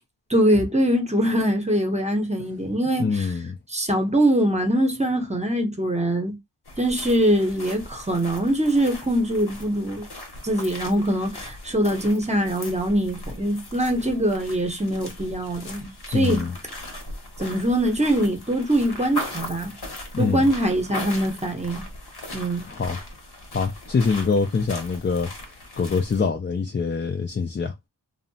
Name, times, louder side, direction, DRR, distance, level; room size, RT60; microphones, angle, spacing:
voice 1, 0.3-3.3 3.7-6.3 6.8-10.1 10.4-16.4 17.4-19.7 20.2-21.8 22.3-22.7, right 1 dB, 15° right, 0.8 m, -23 dB
voice 2, 3.0-3.6 16.1-16.5 20.1-20.5 22.6-23.0 23.5-25.3 25.8-27.7, left 5 dB, 30° left, 0.4 m, -24 dB
sound 1, 6.7-26.3, left 1 dB, 60° left, 0.9 m, -39 dB
2.7 x 2.1 x 2.6 m
wide cardioid pair, 55°, 43 cm